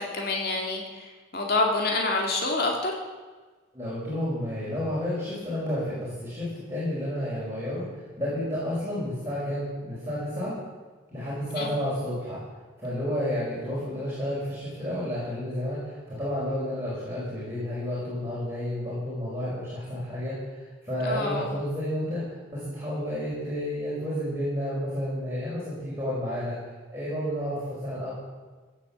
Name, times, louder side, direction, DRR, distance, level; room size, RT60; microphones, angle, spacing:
voice 1, 0.0-2.9 11.6-11.7 21.0-21.5, left 2 dB, 50° left, 0 dB, 2.3 m, -27 dB
voice 2, 3.7-10.6 11.1-12.4 12.8-26.5 26.9-28.1, equal, 10° right, -10 dB, 5.3 m, -31 dB
16.5 x 8.5 x 7.3 m, 1.3 s
head